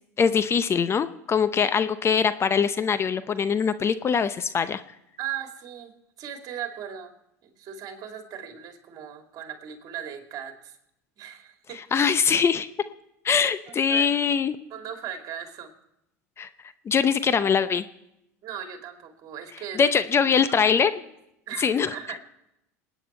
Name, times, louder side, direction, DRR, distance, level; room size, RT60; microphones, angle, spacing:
voice 1, 0.2-4.8 11.9-12.7 13.2-14.6 16.4-16.5 16.9-17.8 19.8-20.9 21.6-21.9, left 6 dB, 30° left, 12 dB, 0.7 m, -22 dB
voice 2, 5.2-7.1 7.4-10.8 11.2-11.8 13.3-14.2 14.7-15.7 18.4-20.6 20.8-21.0 21.5-22.3, right 9 dB, 50° right, 4 dB, 2.5 m, -38 dB
27.5 x 9.4 x 4.4 m, 0.85 s
hypercardioid pair, 85°, 9 cm